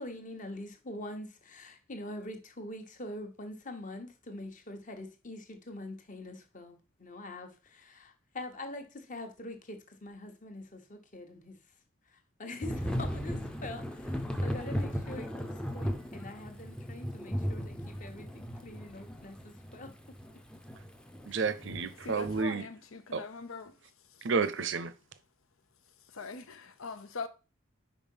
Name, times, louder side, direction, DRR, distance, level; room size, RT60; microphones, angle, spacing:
voice 1, 0.0-11.6 12.1-19.9 21.3-21.4, left 1 dB, 40° left, 1.1 m, -44 dB
Thunder / Rain, 12.6-22.4, equal, 5° left, 0.6 m, -37 dB
voice 2, 21.3-22.7 23.1-23.2 24.2-24.9, right 5 dB, 60° right, 0.6 m, -31 dB
voice 3, 22.0-23.8 24.1-24.3 26.1-27.3, left 4 dB, 80° left, 0.8 m, -42 dB
5.3 x 4.7 x 5.5 m
head